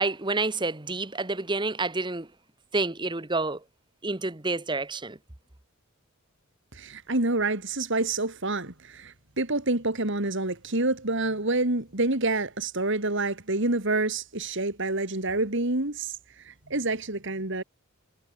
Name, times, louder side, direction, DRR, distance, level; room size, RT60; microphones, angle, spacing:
voice 1, 0.0-2.3 2.7-3.6 4.0-5.2, right 3 dB, 20° right, 1.3 m, -28 dB
voice 2, 6.7-17.6, right 2 dB, 55° right, 3.0 m, -28 dB
head